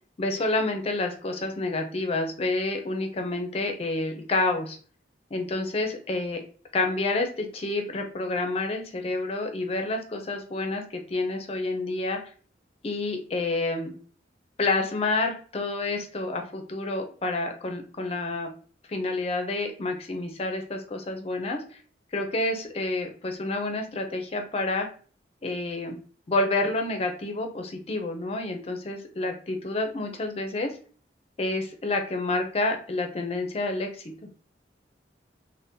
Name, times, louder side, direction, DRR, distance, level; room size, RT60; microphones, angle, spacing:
voice 1, 0.2-4.8 5.3-6.4 6.7-12.2 12.8-13.9 14.6-18.5 18.9-21.8 22.1-24.9 25.4-26.0 26.3-30.7 31.4-34.1, left 2 dB, 35° left, 4 dB, 0.4 m, -29 dB
3.6 x 2.1 x 2.6 m, 0.42 s
head